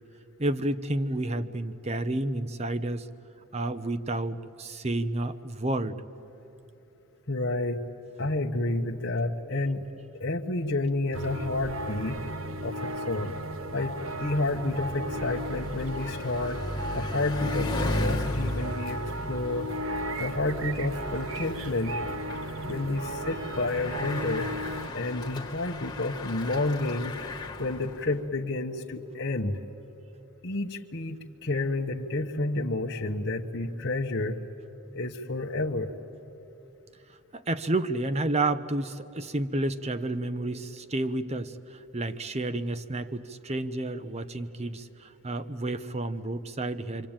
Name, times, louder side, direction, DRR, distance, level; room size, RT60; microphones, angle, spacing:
voice 1, 0.4-3.1 3.5-6.0 24.8-25.0 37.3-47.1, right 2 dB, 30° right, 12 dB, 0.8 m, -30 dB
voice 2, 7.3-7.8 8.2-9.9 10.2-12.2 12.6-13.4 13.7-16.6 16.9-19.0 19.3-19.7 20.2-21.9 22.6-24.5 24.9-27.2 27.6-29.6 30.4-34.4 34.9-35.9, left 2 dB, 55° left, 0 dB, 1.1 m, -30 dB
sound 1, 11.1-24.9, right 1 dB, 65° right, 1.0 m, -35 dB
Bicycle, 13.6-28.2, left 1 dB, 20° left, 1.6 m, -36 dB
27.0 x 25.0 x 8.9 m, 2.9 s
head